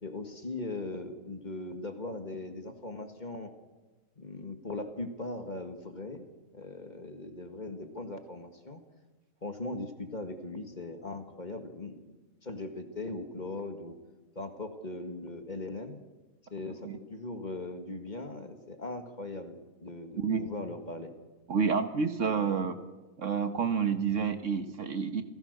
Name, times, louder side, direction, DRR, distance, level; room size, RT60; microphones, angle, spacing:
voice 1, 0.0-3.5 4.2-6.3 6.5-8.8 9.4-12.0 12.4-14.0 14.4-16.0 16.5-19.5 19.8-21.1, left 2 dB, 30° left, 6 dB, 2.0 m, -39 dB
voice 2, 21.5-22.8 23.2-25.2, right 6 dB, 60° right, 8 dB, 1.6 m, -29 dB
28.5 x 17.0 x 6.7 m, 1.2 s
omnidirectional pair, 1.5 m